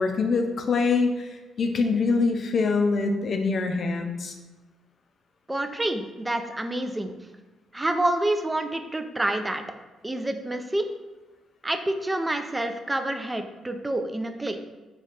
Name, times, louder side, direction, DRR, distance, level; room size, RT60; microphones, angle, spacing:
voice 1, 0.0-4.4, left 4 dB, 50° left, 4 dB, 0.5 m, -24 dB
voice 2, 5.5-7.2 7.7-9.6 10.0-10.8 11.6-14.6, right 1 dB, 15° right, 7 dB, 0.3 m, -28 dB
4.1 x 2.3 x 3.3 m, 1.2 s
cardioid pair, 90°, 0 cm